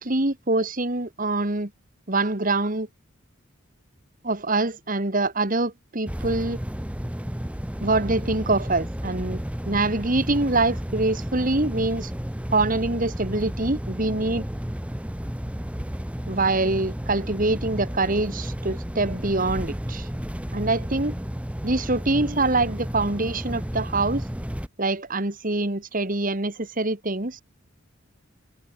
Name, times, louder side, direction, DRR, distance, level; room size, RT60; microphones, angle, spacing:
voice 1, 0.0-1.7 2.1-2.9 4.2-6.6 7.8-9.4 9.7-12.1 12.5-14.5 16.3-20.1 20.5-21.2 21.6-24.2 24.8-27.4, right 2 dB, 40° right, 1.9 m, -24 dB
sound 1, 6.1-24.7, equal, 5° right, 0.9 m, -32 dB
head